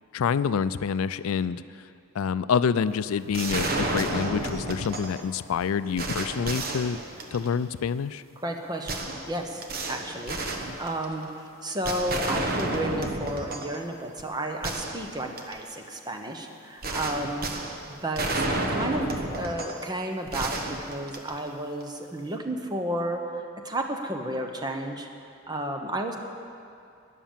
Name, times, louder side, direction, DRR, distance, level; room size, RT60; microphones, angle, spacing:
voice 1, 0.1-1.6 2.1-7.0 7.3-8.2, left 6 dB, 90° left, 15 dB, 0.4 m, -27 dB
sound 1, 3.3-5.2 5.6-5.7 6.0-7.6 8.9-11.3 11.8-13.8 14.2-14.3 14.6-15.6 16.8-19.9 20.3-21.6, right 2 dB, 45° right, 1.1 m, -31 dB
voice 2, 8.4-11.3 11.6-17.5 17.9-23.2 23.6-25.1 25.5-26.2, right 1 dB, 20° right, 3 dB, 1.0 m, -32 dB
13.0 x 10.5 x 7.4 m, 2.5 s
head